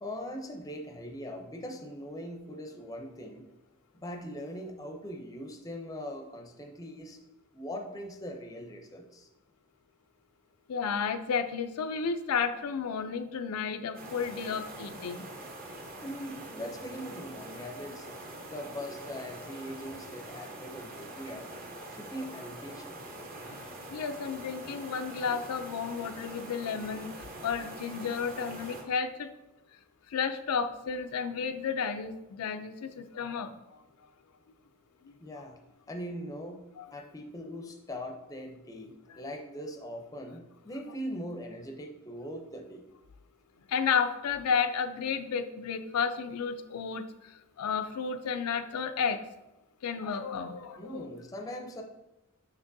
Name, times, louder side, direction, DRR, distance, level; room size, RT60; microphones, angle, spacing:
voice 1, 0.0-3.5 3.9-7.2 7.5-9.3 16.0-18.1 18.5-21.5 21.9-23.0 35.2-35.6 35.9-42.9 50.1-50.3 50.8-51.8, equal, 15° left, 3 dB, 0.5 m, -41 dB
voice 2, 10.7-15.3 23.9-29.3 30.1-33.5 36.8-36.9 43.7-49.2 49.8-51.2, left 6 dB, 85° left, 8 dB, 0.4 m, -32 dB
sound 1, 13.9-28.8, right 1 dB, 40° right, 1.0 m, -44 dB
6.0 x 5.8 x 2.6 m, 0.96 s
head